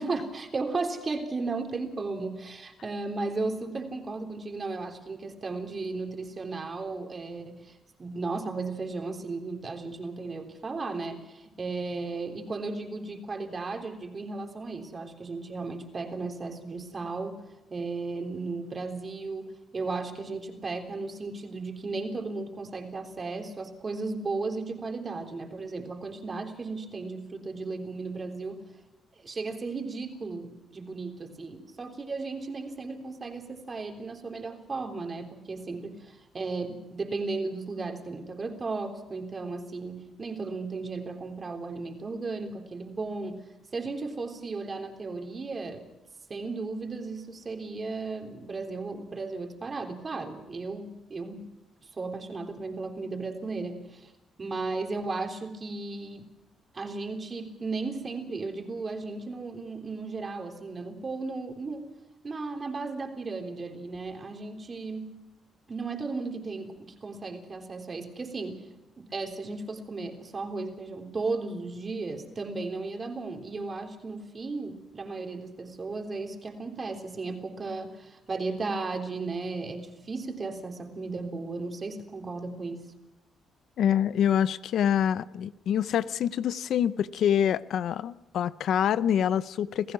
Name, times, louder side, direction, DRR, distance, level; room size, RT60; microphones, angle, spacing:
voice 1, 0.0-17.4 17.7-28.6 29.2-43.4 43.7-45.9 46.3-51.4 52.0-54.1 54.4-56.3 56.7-61.9 62.2-65.2 65.7-68.6 69.0-82.9, right 3 dB, 35° right, 4 dB, 3.6 m, -35 dB
voice 2, 83.8-89.9, left 9 dB, 70° left, 16 dB, 0.6 m, -26 dB
27.5 x 16.0 x 6.2 m, 0.96 s
cardioid pair, 90°, 0 cm